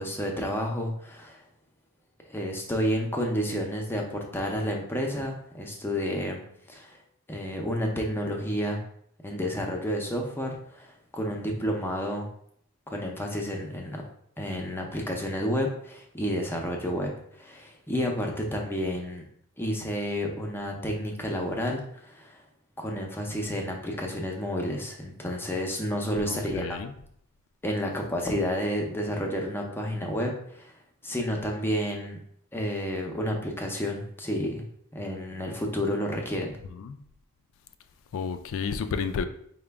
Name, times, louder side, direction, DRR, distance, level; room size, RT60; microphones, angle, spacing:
voice 1, 0.0-1.4 2.3-6.4 6.7-7.0 7.3-8.8 9.2-12.3 12.9-14.0 14.4-19.2 19.6-22.4 22.8-26.8 27.6-30.7 31.0-32.2 32.5-34.6 34.9-36.6, equal, 10° left, 0.5 m, -30 dB
voice 2, 26.2-26.9 36.7-37.0 38.1-39.2, left 6 dB, 60° left, 0.3 m, -31 dB
4.9 x 2.2 x 3.3 m
head